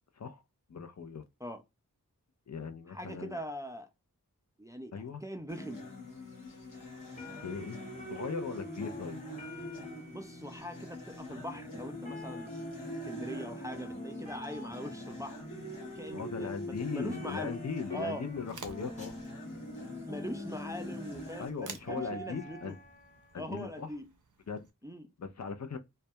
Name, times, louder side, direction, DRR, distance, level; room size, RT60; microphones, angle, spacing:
voice 1, 0.7-1.2 2.5-3.4 4.9-5.2 7.4-9.2 16.1-19.2 21.4-22.8 23.3-23.9 24.5-24.7 25.2-25.8, left 5 dB, 55° left, 0.5 m, -39 dB
voice 2, 2.9-3.9 4.6-4.9 5.2-5.9 10.1-12.7 13.0-15.4 16.0-17.6 17.9-18.3 20.0-22.7 23.3-24.1 24.8-25.1, equal, 10° right, 0.4 m, -42 dB
sound 1, 5.5-21.5, left 1 dB, 75° left, 0.8 m, -44 dB
sound 2, 5.9-23.3, right 1 dB, 20° left, 1.1 m, -48 dB
sound 3, 18.3-24.7, right 5 dB, 65° right, 0.5 m, -53 dB
2.2 x 2.2 x 2.7 m
wide cardioid pair, 45°, 34 cm